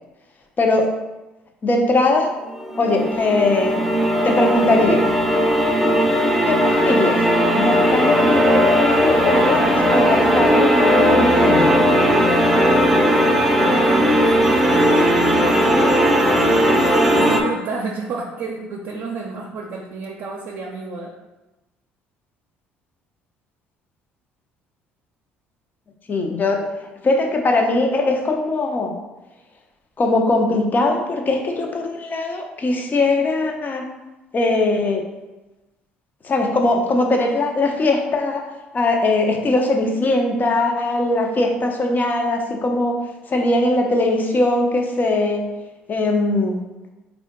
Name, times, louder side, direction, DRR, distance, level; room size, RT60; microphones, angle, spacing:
voice 1, 0.6-0.9 1.6-2.3 2.8-3.8 4.2-5.0 6.4-7.2 7.5-11.7 26.1-26.6 27.0-28.9 30.0-33.8 34.3-35.0 36.2-38.4 38.7-43.0 43.3-45.4 45.9-46.6, left 2 dB, 35° left, 2 dB, 0.8 m, -20 dB
sound 1, 2.5-17.4, equal, ahead, 0.7 m, -17 dB
voice 2, 13.5-21.1, right 3 dB, 55° right, -2 dB, 0.6 m, -31 dB
4.3 x 2.4 x 3.7 m, 1.1 s
hypercardioid pair, 55°, 5 cm